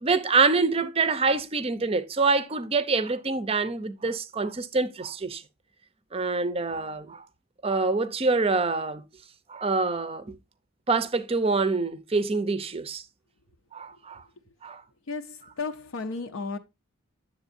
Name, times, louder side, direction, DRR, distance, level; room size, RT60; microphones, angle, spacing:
voice 1, 0.0-5.4 6.1-7.2 7.6-9.0 9.5-10.4 10.9-13.0 13.7-14.2 14.6-14.8, right 4 dB, 30° right, 0.5 m, -26 dB
voice 2, 15.1-16.6, left 4 dB, 70° left, 0.6 m, -34 dB
8.1 x 7.3 x 2.5 m
head